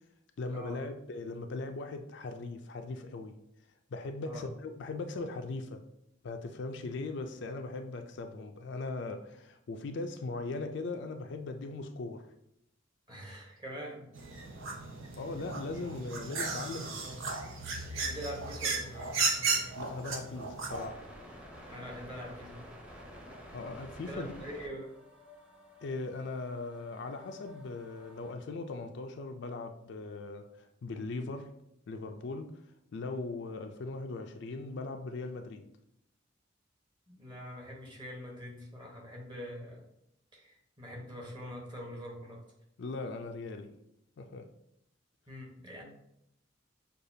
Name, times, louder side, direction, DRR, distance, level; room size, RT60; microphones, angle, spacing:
voice 1, 0.4-3.4 3.9-5.8 6.2-12.3 15.2-17.1 19.8-21.1 23.5-24.5 25.8-30.5 30.8-31.5 31.9-32.6 32.9-35.7 42.8-43.7 44.2-44.5, left 3 dB, 65° left, 6 dB, 0.4 m, -39 dB
voice 2, 13.1-14.1 17.0-17.2 17.9-19.1 21.7-22.7 24.1-24.9 37.1-39.8 40.3-42.4 45.3-45.8, equal, 25° right, -2 dB, 1.1 m, -44 dB
sound 1, 14.2-20.9, right 4 dB, 80° right, 0.7 m, -35 dB
sound 2, 18.1-28.3, left 1 dB, 5° right, 0.8 m, -52 dB
6.5 x 2.4 x 2.7 m, 0.78 s
head